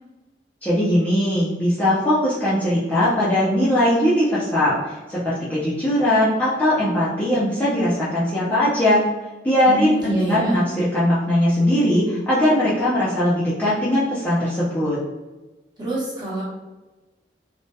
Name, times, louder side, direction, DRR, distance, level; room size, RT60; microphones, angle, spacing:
voice 1, 0.6-9.0 9.4-15.0, left 1 dB, 10° left, -10 dB, 0.5 m, -20 dB
voice 2, 9.6-10.6 15.8-16.4, right 1 dB, 25° right, -7 dB, 0.8 m, -26 dB
2.7 x 2.1 x 2.2 m, 1.1 s
head